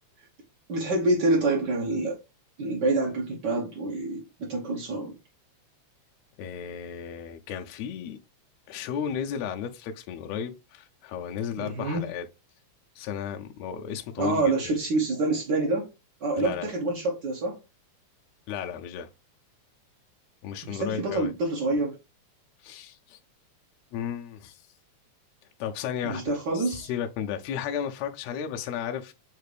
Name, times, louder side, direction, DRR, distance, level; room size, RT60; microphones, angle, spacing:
voice 1, 0.7-2.2 2.6-5.1 11.6-12.1 14.2-15.9 16.2-17.6 20.6-22.0 26.0-26.9, right 2 dB, 80° right, 0.9 m, -27 dB
voice 2, 6.4-8.2 8.7-12.2 12.9-14.8 16.4-16.7 18.5-19.1 20.4-21.3 22.6-23.2 23.9-24.6 25.6-29.1, left 8 dB, 80° left, 1.6 m, -34 dB
6.5 x 2.5 x 3.2 m
omnidirectional pair, 3.3 m